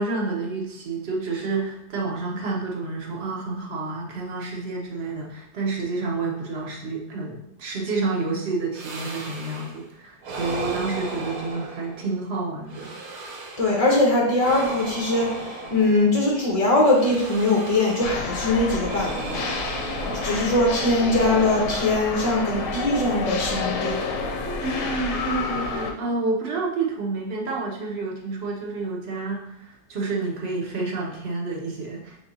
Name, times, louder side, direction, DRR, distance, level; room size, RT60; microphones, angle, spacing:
voice 1, 0.0-13.0 24.6-32.2, right 3 dB, 50° right, -2 dB, 0.8 m, -29 dB
sound 1, 8.7-9.8 10.2-12.2 12.7-13.9 14.3-16.3 16.9-18.3 18.8-20.9, right 3 dB, 65° right, 1.1 m, -36 dB
voice 2, 13.6-24.3, left 2 dB, 45° left, -3 dB, 0.4 m, -22 dB
sound 2, 18.0-25.9, left 3 dB, 75° left, 1.2 m, -29 dB
5.3 x 3.3 x 2.6 m, 0.81 s
omnidirectional pair, 1.9 m